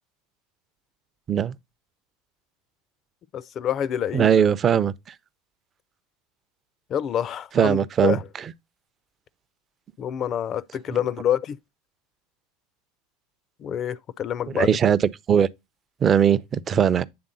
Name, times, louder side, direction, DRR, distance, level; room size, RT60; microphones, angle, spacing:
voice 1, 3.3-4.3 6.9-8.2 10.0-11.6 13.6-14.7, left 9 dB, 40° left, 0.4 m, -27 dB
voice 2, 4.1-4.9 7.5-8.2 14.5-15.0 15.3-15.5 16.0-17.0, right 8 dB, 35° right, 0.5 m, -19 dB
8.7 x 3.6 x 3.9 m
hypercardioid pair, 85°, 0 cm